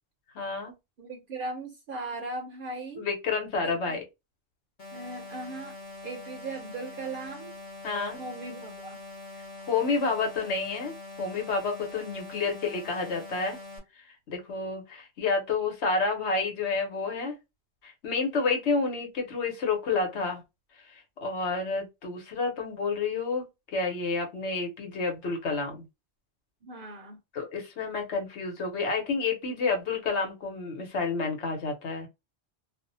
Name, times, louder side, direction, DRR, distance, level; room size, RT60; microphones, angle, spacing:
voice 1, 0.3-0.7 3.0-4.0 7.8-8.2 9.7-13.6 14.0-17.3 17.8-20.4 20.9-23.4 23.7-25.8 27.3-32.1, left 4 dB, 85° left, 1.2 m, -29 dB
voice 2, 1.0-3.1 3.6-4.0 4.9-5.8 6.0-7.6 8.2-9.0 26.6-27.2, right 2 dB, 60° right, 0.7 m, -38 dB
sound 1, 4.8-13.8, left 2 dB, 40° left, 0.9 m, -44 dB
2.5 x 2.1 x 2.6 m
omnidirectional pair, 1.1 m